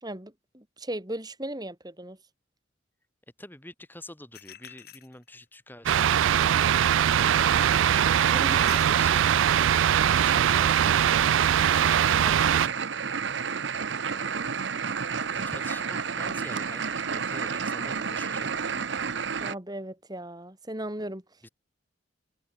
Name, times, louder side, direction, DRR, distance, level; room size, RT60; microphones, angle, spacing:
voice 1, 0.0-2.2 8.3-8.6 19.4-21.2, right 1 dB, 20° right, 3.2 m, -37 dB
voice 2, 3.4-7.2 8.2-9.3 10.2-11.7 14.0-14.5 15.3-19.1 21.4-21.5, left 1 dB, 10° left, 7.3 m, -46 dB
sound 1, 4.3-5.5 7.2-7.8 8.5-9.2, left 11 dB, 55° left, 4.0 m, -47 dB
sound 2, 5.9-12.7, right 9 dB, 90° right, 0.4 m, -22 dB
sound 3, 7.2-19.5, right 6 dB, 70° right, 0.9 m, -31 dB
head